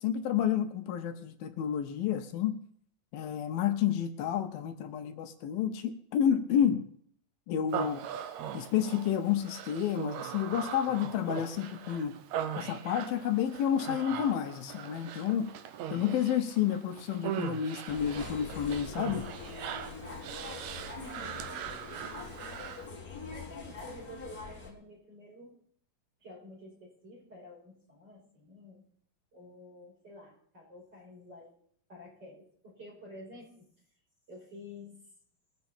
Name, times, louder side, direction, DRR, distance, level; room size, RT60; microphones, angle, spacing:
voice 1, 0.0-2.5 3.1-6.8 7.5-8.0 8.5-12.1 12.6-15.5 15.9-19.3, left 9 dB, 80° left, 7 dB, 2.7 m, -30 dB
Human voice, 7.7-22.9, right 9 dB, 70° right, 1.7 m, -40 dB
sound 1, 17.9-24.7, left 4 dB, 30° left, 2.0 m, -44 dB
voice 2, 20.9-21.4 23.3-25.5 26.2-28.8 29.3-31.5 31.9-33.7 34.3-35.0, left 1 dB, 25° right, -5 dB, 6.1 m, -50 dB
22.0 x 8.4 x 4.3 m, 0.62 s
omnidirectional pair, 4.2 m